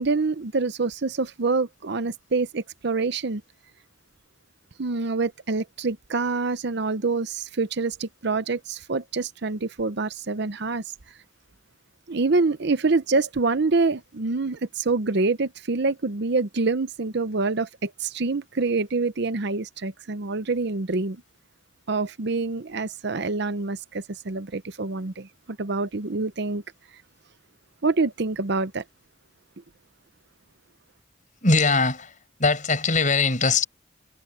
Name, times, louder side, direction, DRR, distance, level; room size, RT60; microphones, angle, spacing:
voice 1, 0.0-3.4 4.8-10.8 12.1-21.2 21.9-26.6 27.8-28.8, right 3 dB, 60° right, 0.8 m, -26 dB
voice 2, 31.4-33.6, left 3 dB, 40° left, 5.9 m, -21 dB
head